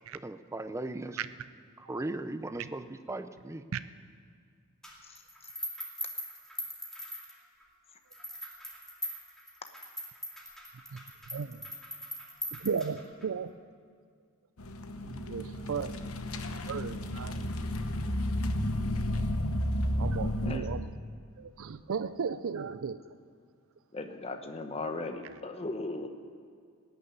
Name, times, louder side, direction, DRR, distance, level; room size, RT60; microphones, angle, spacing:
voice 1, 0.2-1.2 1.9-3.6, right 2 dB, 15° right, 11 dB, 0.5 m, -37 dB
sound 1, 4.8-7.6 8.1-13.3, equal, ahead, 2.3 m, -41 dB
voice 2, 11.3-11.7 12.5-13.5 15.0-16.0 16.6-17.3 19.9-20.9 21.4-23.0, right 6 dB, 65° right, 13 dB, 0.5 m, -35 dB
sound 2, 14.6-20.6, left 1 dB, 75° left, 0.9 m, -32 dB
voice 3, 23.9-26.1, left 2 dB, 30° left, 6 dB, 0.9 m, -37 dB
18.5 x 6.8 x 9.3 m, 2.1 s
head